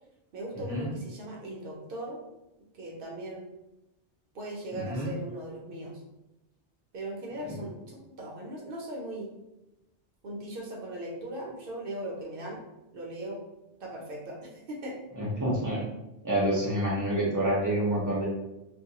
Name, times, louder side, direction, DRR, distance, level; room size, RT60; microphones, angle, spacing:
voice 1, 0.3-2.2 2.8-3.5 4.3-6.0 6.9-9.3 10.2-12.6 12.9-13.4 13.8-15.0, right 1 dB, 60° right, -2 dB, 0.7 m, -39 dB
voice 2, 4.7-5.1 7.5-7.6 15.1-15.8 16.2-18.3, right 1 dB, 20° right, -6 dB, 0.6 m, -28 dB
2.3 x 2.1 x 2.8 m, 0.94 s
omnidirectional pair, 1.1 m